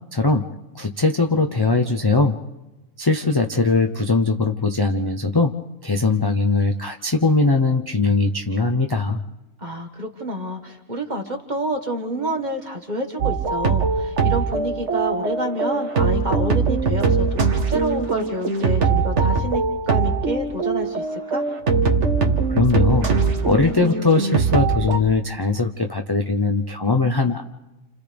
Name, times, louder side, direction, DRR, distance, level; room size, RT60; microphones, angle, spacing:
voice 1, 0.1-0.5 0.7-2.4 3.0-5.5 5.8-9.2 22.5-23.1 23.4-27.4, left 3 dB, 25° left, 3 dB, 0.5 m, -20 dB
voice 2, 9.6-21.4, right 1 dB, 30° right, 3 dB, 1.6 m, -28 dB
sound 1, 13.2-25.0, right 4 dB, 50° right, 1.5 m, -21 dB
29.5 x 29.0 x 3.5 m, 1.1 s
omnidirectional pair, 1.6 m